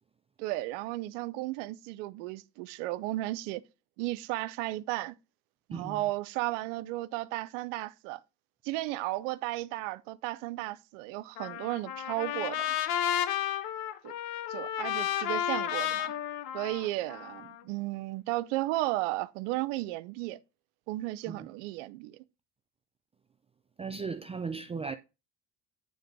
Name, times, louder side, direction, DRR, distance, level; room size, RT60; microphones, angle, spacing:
voice 1, 0.4-3.6 4.0-5.2 5.7-8.2 8.6-12.7 14.0-14.2 14.5-16.1 16.5-20.4 20.9-22.2, right 18 dB, 90° right, 0.6 m, -34 dB
Trumpet, 11.4-17.6, left 11 dB, 75° left, 0.8 m, -32 dB
voice 2, 23.8-25.0, right 5 dB, 15° right, 0.4 m, -36 dB
9.2 x 3.4 x 5.1 m
supercardioid pair, 90°, 36 cm